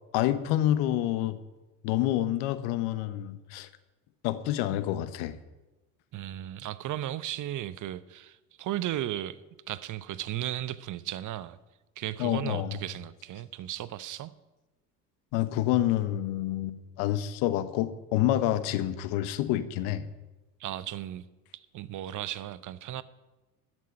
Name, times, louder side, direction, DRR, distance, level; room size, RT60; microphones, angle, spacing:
voice 1, 0.1-1.4 1.8-3.7 4.2-5.4 12.2-12.8 15.3-20.1, left 13 dB, 65° left, 1.1 m, -28 dB
voice 2, 6.1-9.4 9.7-11.6 12.0-14.3 20.6-21.2 21.5-23.0, right 13 dB, 45° right, 0.8 m, -35 dB
13.5 x 6.2 x 9.6 m
hypercardioid pair, 65°, 42 cm